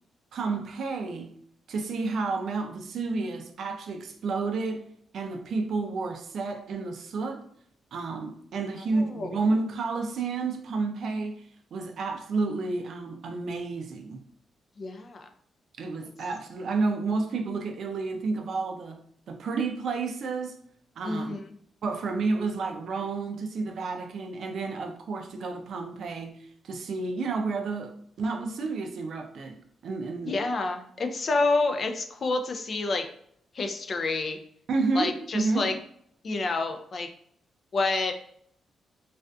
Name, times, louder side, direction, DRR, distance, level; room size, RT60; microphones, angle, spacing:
voice 1, 0.3-1.4 1.7-4.8 5.1-7.4 7.9-11.4 11.7-14.2 15.8-19.0 19.3-20.6 21.0-21.3 21.8-30.4 34.7-35.7, right 3 dB, 70° right, 0.4 m, -30 dB
voice 2, 8.9-9.3 14.8-15.3 21.0-21.4 30.2-33.1 33.5-34.4 34.9-35.7 36.2-37.1 37.7-38.1, left 3 dB, 50° left, 0.4 m, -28 dB
2.4 x 2.4 x 2.2 m
cardioid pair, 75°, 0 cm